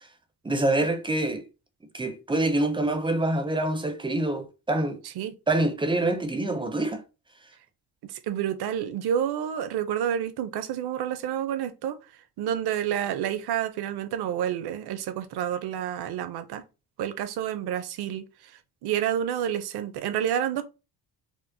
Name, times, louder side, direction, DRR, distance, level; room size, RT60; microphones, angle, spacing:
voice 1, 0.4-1.4 1.9-5.0 5.5-7.0, right 2 dB, 15° right, 0.4 m, -26 dB
voice 2, 5.0-5.3 8.0-12.0 12.4-16.6 17.0-18.2 18.8-20.6, right 10 dB, 65° right, 0.6 m, -29 dB
4.3 x 2.0 x 2.6 m
cardioid pair, 135°, 42 cm